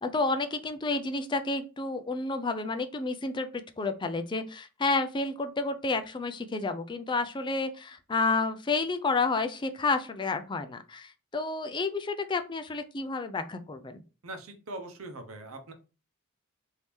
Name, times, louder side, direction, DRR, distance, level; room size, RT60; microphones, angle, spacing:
voice 1, 0.0-14.0, left 3 dB, 20° left, 8 dB, 0.4 m, -30 dB
voice 2, 14.2-15.7, right 2 dB, 75° right, 6 dB, 0.8 m, -41 dB
3.5 x 2.7 x 3.0 m, 0.32 s
head